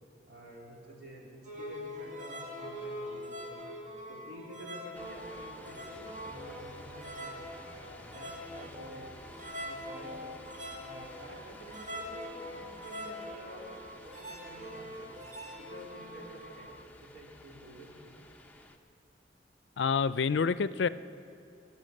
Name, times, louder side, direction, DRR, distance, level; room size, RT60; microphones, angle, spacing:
voice 1, 0.3-3.6 4.1-7.4 7.8-9.1 9.6-10.4 10.8-13.7 14.0-15.1 15.6-16.7 17.1-18.1, equal, 75° right, -3 dB, 3.5 m, -50 dB
sound 1, 1.4-16.8, equal, 45° right, 2.2 m, -43 dB
sound 2, 4.9-18.8, left 2 dB, 10° left, 0.8 m, -53 dB
voice 2, 19.8-20.9, left 5 dB, 80° left, 15 dB, 0.4 m, -27 dB
23.0 x 8.4 x 6.6 m, 2.6 s
head